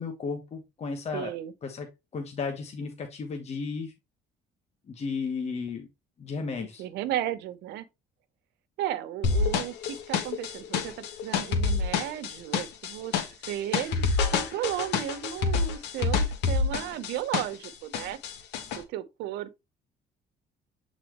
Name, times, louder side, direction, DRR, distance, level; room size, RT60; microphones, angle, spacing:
voice 1, 0.0-1.3 1.6-3.9 4.9-5.9 6.2-6.8, left 5 dB, 40° left, 1.3 m, -34 dB
voice 2, 1.1-1.5 6.6-7.9 8.8-18.2 18.7-19.5, right 12 dB, 85° right, 0.9 m, -34 dB
sound 1, 9.2-17.7 17.9-18.8, left 5 dB, 90° left, 1.4 m, -27 dB
7.9 x 4.2 x 3.0 m
cardioid pair, 110°, 17 cm